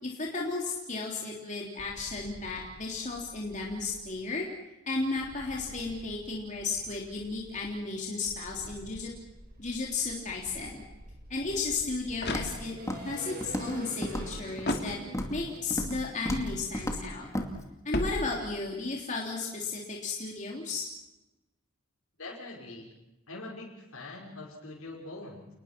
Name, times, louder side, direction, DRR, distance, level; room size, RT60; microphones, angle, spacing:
voice 1, 0.0-4.5 4.9-9.1 9.6-10.8 11.3-15.0 15.3-17.3 17.9-20.8, left 3 dB, 35° left, -2 dB, 3.4 m, -34 dB
sound 1, 1.8-4.1 5.2-7.7 8.2-17.0, right 1 dB, 45° right, 5.3 m, -48 dB
sound 2, 12.2-13.0 14.6-15.5 17.9-18.8, left 1 dB, 50° left, 2.7 m, -35 dB
Walk footsteps, 12.3-12.6 12.9-13.2 13.4-13.8 14.0-14.9 15.1-15.4 15.7-16.0 16.2-16.5 16.7-17.0 17.3-17.5, equal, 15° left, 2.4 m, -33 dB
voice 2, 22.2-22.9 23.3-25.5, left 2 dB, 80° left, -4 dB, 5.6 m, -43 dB
29.5 x 20.5 x 6.1 m, 0.98 s
head